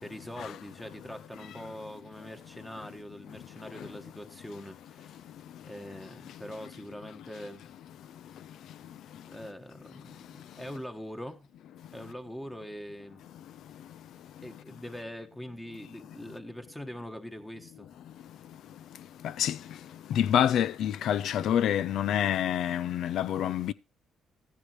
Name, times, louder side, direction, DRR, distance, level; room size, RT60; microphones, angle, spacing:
voice 1, 0.0-5.2 5.6-7.7 9.3-11.5 11.9-13.2 14.4-17.9, equal, 5° left, 1.4 m, -43 dB
voice 2, 3.4-3.9 5.5-5.6 5.9-6.0 6.3-6.4 8.4-8.5 8.8-9.2 12.0-12.1 13.3-13.4 13.7-13.9 14.4-14.5 19.0-23.7, left 10 dB, 75° left, 0.5 m, -29 dB
14.0 x 10.0 x 3.1 m
cardioid pair, 90°, 0 cm